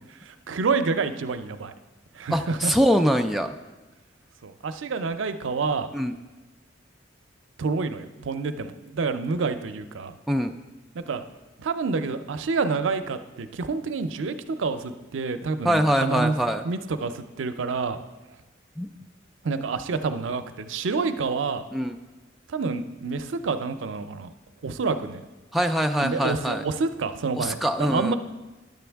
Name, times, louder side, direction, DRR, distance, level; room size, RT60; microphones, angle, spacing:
voice 1, 0.3-1.7 2.1-2.7 4.4-5.9 7.6-10.1 10.9-11.2 11.6-16.3 16.6-18.0 19.4-21.6 22.5-24.3 24.6-25.2 26.0-28.1, right 4 dB, 90° right, 10 dB, 0.5 m, -28 dB
voice 2, 2.3-3.5 5.9-6.2 10.3-10.5 15.6-16.7 18.8-18.9 21.7-22.0 25.5-26.6 27.3-28.1, equal, ahead, 4 dB, 0.3 m, -23 dB
10.5 x 7.0 x 3.4 m, 1.2 s
head